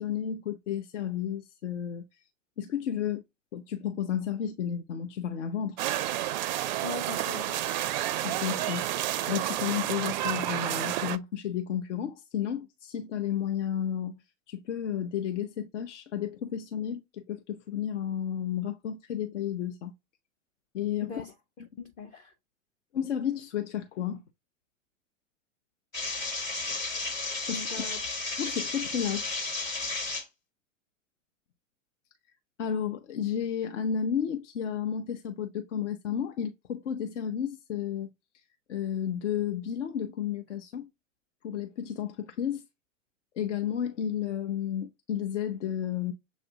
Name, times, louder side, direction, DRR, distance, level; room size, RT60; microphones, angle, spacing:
voice 1, 0.0-2.2 2.6-3.2 3.5-5.8 8.2-8.9 9.3-19.9 20.7-21.2 22.9-24.2 27.5-27.8 28.4-29.4 32.6-38.1 38.3-38.4 38.7-40.9 41.4-42.7 43.3-46.1, left 9 dB, 65° left, 0.6 m, -32 dB
sound 1, 5.8-11.2, right 13 dB, 40° right, 0.4 m, -30 dB
voice 2, 6.8-7.6 21.0-22.3 27.5-28.0, left 5 dB, 20° left, 0.4 m, -41 dB
sound 2, 25.9-30.2, left 3 dB, 85° left, 1.5 m, -33 dB
7.0 x 2.5 x 2.7 m
figure-of-eight pair, 100°, 39 cm